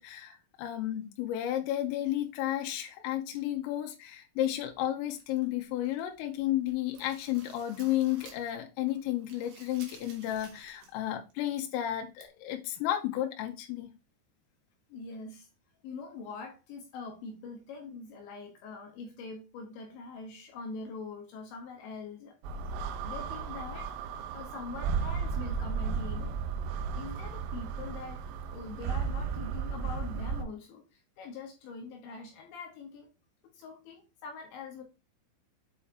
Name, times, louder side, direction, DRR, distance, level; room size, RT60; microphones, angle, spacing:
voice 1, 0.0-13.9, left 13 dB, 90° left, 3 dB, 3.5 m, -32 dB
sound 1, 5.1-6.2 6.5-8.6 8.9-11.0 11.3-11.4 12.2-12.3, right 5 dB, 60° right, 3.0 m, -54 dB
voice 2, 14.9-15.5 15.8-22.4 23.0-23.9 24.3-26.3 26.9-33.1 33.5-34.8, left 4 dB, 70° left, 2 dB, 3.3 m, -43 dB
sound 2, 22.4-30.4, right 6 dB, 80° right, 3.1 m, -34 dB
8.2 x 4.3 x 3.7 m, 0.28 s
omnidirectional pair, 5.8 m